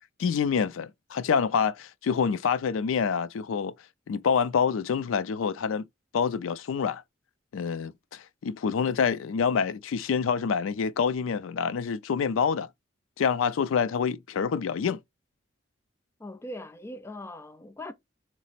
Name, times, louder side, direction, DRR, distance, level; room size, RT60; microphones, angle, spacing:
voice 1, 0.2-3.7 4.1-5.9 6.1-7.0 7.5-12.7 13.2-15.0, left 6 dB, 90° left, 0.4 m, -27 dB
voice 2, 16.2-17.9, left 1 dB, 15° left, 0.4 m, -40 dB
5.0 x 2.0 x 4.0 m
head